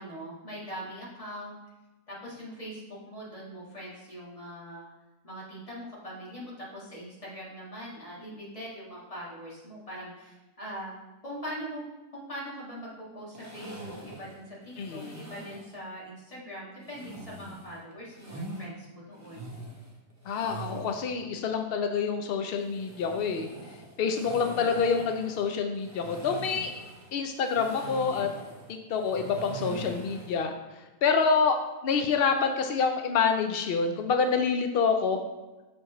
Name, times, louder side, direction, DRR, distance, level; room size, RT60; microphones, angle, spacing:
voice 1, 0.0-1.6 2.1-4.9 5.2-11.0 11.2-11.8 12.1-19.5 29.6-29.9, equal, 25° left, -7 dB, 1.9 m, -42 dB
sound 1, 13.3-15.7 16.8-18.7 19.1-21.1 22.5-30.4, right 2 dB, 15° right, 0.9 m, -43 dB
voice 2, 14.8-15.2 20.3-23.5 24.0-26.7 27.1-28.3 28.7-35.2, left 5 dB, 80° left, 5 dB, 0.5 m, -27 dB
6.3 x 6.1 x 3.0 m, 1.1 s
omnidirectional pair, 1.5 m